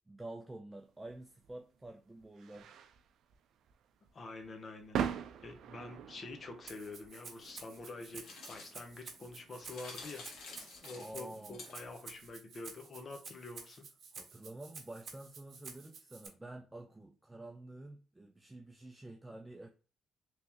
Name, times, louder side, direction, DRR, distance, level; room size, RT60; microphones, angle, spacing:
voice 1, 0.1-2.7 11.0-11.6 14.1-19.7, right 1 dB, 15° right, 0.5 m, -49 dB
sound 1, 1.0-12.3, right 8 dB, 75° right, 0.4 m, -45 dB
voice 2, 4.1-5.0 5.4-10.3 10.8-13.9, left 2 dB, 40° left, 0.9 m, -47 dB
Rattle (instrument), 6.7-16.3, right 5 dB, 60° right, 0.8 m, -51 dB
sound 2, 7.4-12.1, left 4 dB, 75° left, 1.0 m, -52 dB
3.3 x 3.1 x 2.9 m
cardioid pair, 90°, 0 cm